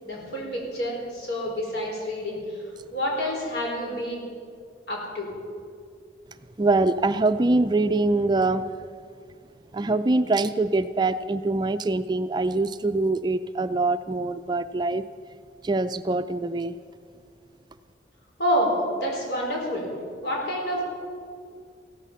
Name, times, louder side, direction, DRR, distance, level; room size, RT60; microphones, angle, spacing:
voice 1, 0.0-2.6 2.9-4.3 4.9-5.3 18.4-18.7 19.0-19.9 20.2-20.8, equal, 75° left, -1 dB, 4.8 m, -28 dB
voice 2, 6.6-8.7 9.7-15.0 15.6-16.8, right 2 dB, 25° right, 11 dB, 0.4 m, -24 dB
16.0 x 14.5 x 5.7 m, 2.2 s
head